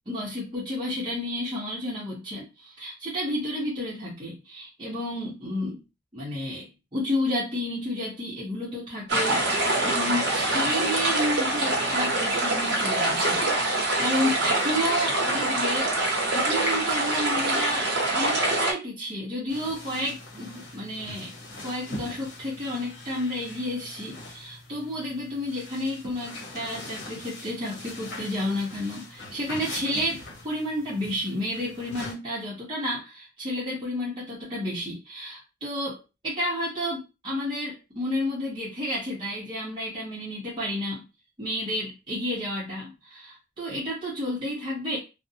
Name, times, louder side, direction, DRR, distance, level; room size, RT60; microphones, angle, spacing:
voice 1, 0.1-5.8 6.1-6.7 6.9-15.9 16.3-21.3 21.6-41.0 41.4-45.0, left 1 dB, 25° right, -8 dB, 0.7 m, -31 dB
sound 1, 9.1-18.7, right 2 dB, 65° right, 0.7 m, -25 dB
sound 2, 19.5-32.1, left 2 dB, 70° left, 0.9 m, -42 dB
2.5 x 2.0 x 2.7 m, 0.29 s
head